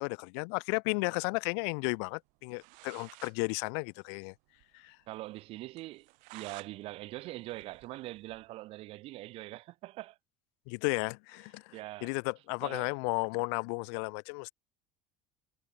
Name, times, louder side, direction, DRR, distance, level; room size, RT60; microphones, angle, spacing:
voice 1, 0.0-4.3 4.7-5.0 10.7-14.5, left 38 dB, 75° left, 0.5 m, -34 dB
sound 1, 2.3-2.4 2.6-3.4 3.7-3.8 4.0-4.1 4.6-4.7 5.0-5.1 5.8-6.7 7.1-8.5, right 29 dB, 65° right, 1.3 m, -52 dB
voice 2, 5.1-10.2 11.7-12.1 12.6-12.9, right 17 dB, 45° right, 0.3 m, -43 dB
cardioid pair, 145°, 14 cm